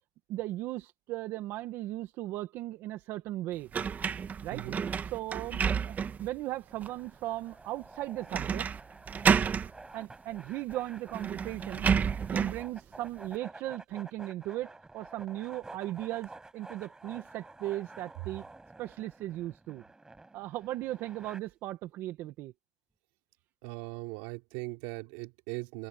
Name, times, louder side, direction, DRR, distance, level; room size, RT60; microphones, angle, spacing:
voice 1, 0.3-3.7 4.4-4.6 5.0-8.7 9.9-11.9 12.3-18.4 18.8-19.8 20.3-22.5, right 15 dB, 70° right, 1.7 m, -37 dB
sound 1, 3.7-6.3 6.8-6.9 8.3-8.8 9.1-9.7 10.7-10.8 11.1-12.6, right 7 dB, 40° right, 1.5 m, -30 dB
sound 2, 6.7-21.4, right 2 dB, 15° right, 7.7 m, -51 dB
voice 2, 23.6-25.9, right 24 dB, 85° right, 3.3 m, -39 dB
supercardioid pair, 90°, 4 cm